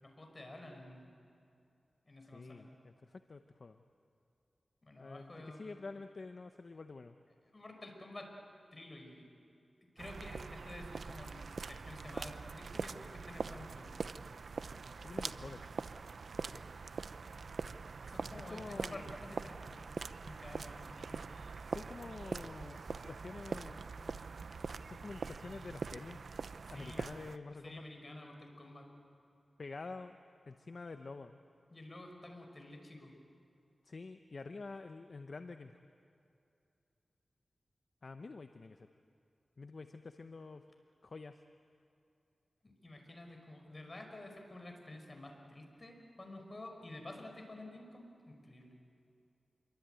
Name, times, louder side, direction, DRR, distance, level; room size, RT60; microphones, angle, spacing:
voice 1, 0.0-1.2 2.1-2.7 4.8-5.8 7.5-8.3 8.7-9.3 10.0-13.9 16.5-16.7 18.1-19.8 20.2-21.2 26.7-27.1 27.6-28.9 31.7-33.1 42.6-48.7, left 1 dB, 35° left, 3 dB, 5.4 m, -50 dB
voice 2, 2.3-3.8 5.0-7.2 15.0-15.6 18.5-19.2 20.5-20.6 21.7-23.8 24.9-26.2 26.7-27.8 29.6-30.2 30.5-31.4 33.8-35.7 38.0-38.9 39.6-40.6 41.0-41.3, left 3 dB, 55° left, 7 dB, 0.9 m, -48 dB
sound 1, 10.0-27.4, right 4 dB, 75° right, 0.7 m, -43 dB
27.0 x 23.5 x 9.2 m, 2.6 s
wide cardioid pair, 75°, 0 cm